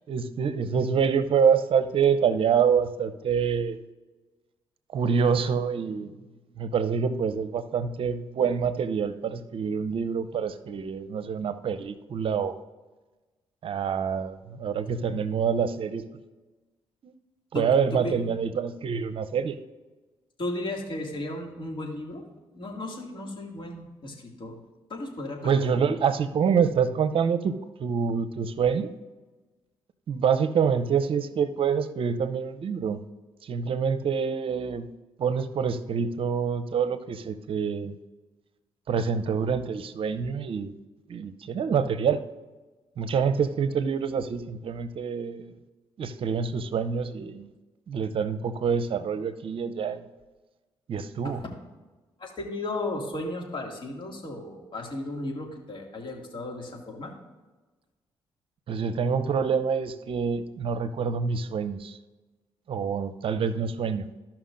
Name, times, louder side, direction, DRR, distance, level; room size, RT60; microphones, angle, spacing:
voice 1, 0.1-3.8 4.9-6.1 6.6-12.6 13.6-16.0 17.0-17.1 17.5-19.6 25.4-27.5 27.8-28.9 30.1-33.0 33.4-34.9 35.2-38.0 38.9-40.7 41.1-42.2 43.0-45.5 46.0-47.5 47.9-50.0 50.9-51.4 58.7-62.0 62.7-64.1, right 6 dB, 60° right, 13 dB, 0.6 m, -26 dB
voice 2, 17.9-18.4 20.4-22.2 22.5-24.6 24.9-25.9 51.2-51.3 52.2-57.1, left 2 dB, 50° left, 1 dB, 2.3 m, -35 dB
14.5 x 5.8 x 2.6 m, 1.2 s
supercardioid pair, 50°, 11 cm